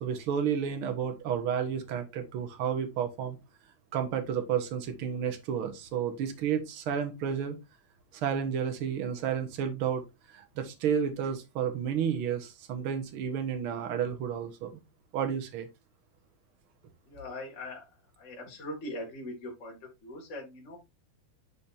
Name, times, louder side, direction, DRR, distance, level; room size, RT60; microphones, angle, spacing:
voice 1, 0.0-3.4 3.9-7.6 8.1-14.7 15.1-15.7, right 8 dB, 55° right, 1.6 m, -31 dB
voice 2, 17.0-17.9 18.2-20.8, left 1 dB, 25° left, 2.3 m, -41 dB
8.9 x 5.3 x 2.7 m
omnidirectional pair, 3.7 m